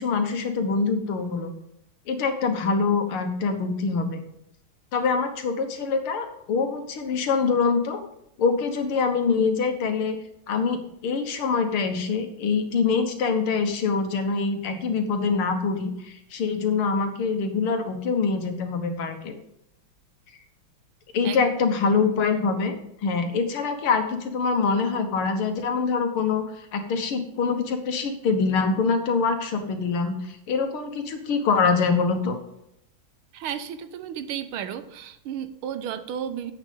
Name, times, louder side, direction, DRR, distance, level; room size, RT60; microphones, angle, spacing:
voice 1, 0.0-1.5 2.1-4.2 4.9-8.0 8.4-10.2 10.5-19.4 21.1-22.7 23.0-26.4 26.7-32.4, left 5 dB, 85° left, 6 dB, 2.2 m, -24 dB
voice 2, 33.3-36.5, right 9 dB, 80° right, 11 dB, 1.6 m, -33 dB
9.9 x 8.2 x 5.3 m, 0.78 s
omnidirectional pair, 2.3 m